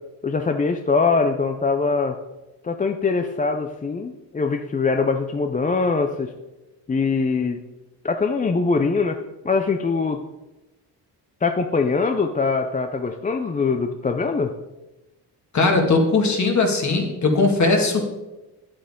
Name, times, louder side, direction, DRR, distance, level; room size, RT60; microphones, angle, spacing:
voice 1, 0.2-2.2 2.6-6.3 6.9-7.6 8.0-9.2 9.4-10.2 11.4-14.5, left 4 dB, 20° left, 6 dB, 0.5 m, -22 dB
voice 2, 15.5-18.0, left 3 dB, 40° left, 2 dB, 2.1 m, -19 dB
9.3 x 8.7 x 3.8 m, 1.0 s
cardioid pair, 95°, 43 cm